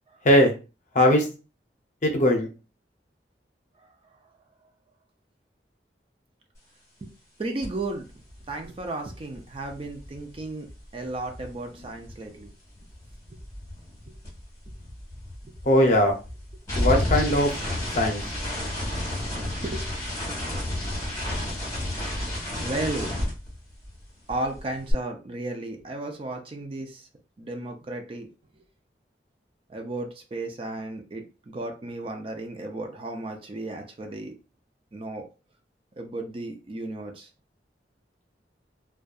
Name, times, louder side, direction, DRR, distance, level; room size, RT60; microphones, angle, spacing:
voice 1, 0.9-1.3 2.0-2.5 15.6-16.2 16.7-17.5 18.0-18.2, left 1 dB, 45° left, 3 dB, 0.6 m, -19 dB
voice 2, 7.4-8.1 8.5-10.7 10.9-12.5 13.3-13.4 14.1-14.2 18.6-18.8 19.6-19.9 22.6-23.1 24.3-27.1 27.4-28.3 29.7-34.3 34.9-35.2 36.0-37.3, right 2 dB, 30° right, 3 dB, 0.4 m, -34 dB
sound 1, 7.6-7.8 8.1-12.5 12.7-24.0 24.3-24.9, left 1 dB, 20° left, 1.2 m, -32 dB
2.6 x 2.2 x 2.3 m, 0.32 s
head